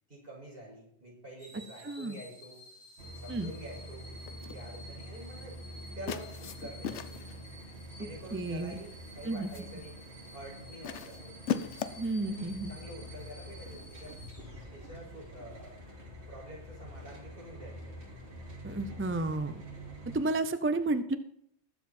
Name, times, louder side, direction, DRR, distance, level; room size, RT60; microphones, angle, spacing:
voice 1, 0.1-2.6 3.0-4.1 4.5-5.5 5.9-7.3 7.9-10.0 10.3-11.4 12.2-14.1 14.7-15.7 16.3-17.9, right 1 dB, 55° right, -5 dB, 6.2 m, -47 dB
sound 1, 1.4-15.0 15.5-15.7, left 1 dB, 35° left, 4.9 m, -53 dB
voice 2, 1.8-2.2 3.3-3.5 8.3-8.8 9.2-9.5 12.0-12.7 18.6-19.6 20.1-21.2, right 2 dB, 20° right, 11 dB, 0.3 m, -31 dB
sound 2, 3.0-20.2, right 1 dB, 75° right, 2.9 m, -47 dB
sound 3, 4.3-4.6 6.1-7.4 8.4-8.8 9.2-9.8 10.8-12.1, left 8 dB, 90° left, 1.0 m, -38 dB
20.5 x 7.5 x 4.3 m, 0.71 s
omnidirectional pair, 1.1 m